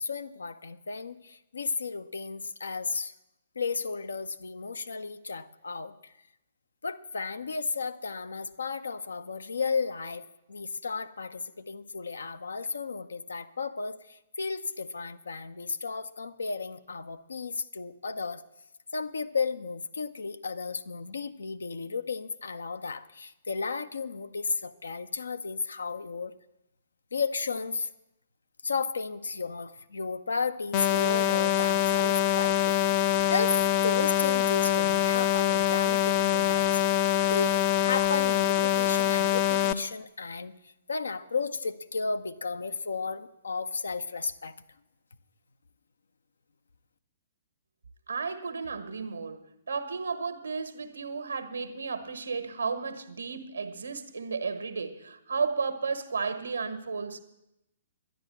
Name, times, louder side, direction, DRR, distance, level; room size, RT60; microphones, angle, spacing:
voice 1, 0.0-3.1 3.6-6.1 6.8-18.4 18.9-26.3 27.1-27.9 28.6-36.7 37.3-44.5, left 4 dB, 70° left, 10 dB, 0.7 m, -34 dB
sound 1, 30.7-39.7, left 11 dB, 35° left, 0.6 m, -24 dB
voice 2, 48.1-57.2, right 5 dB, 75° right, 9 dB, 1.3 m, -33 dB
11.0 x 10.5 x 7.7 m, 0.87 s
figure-of-eight pair, 120°, 0 cm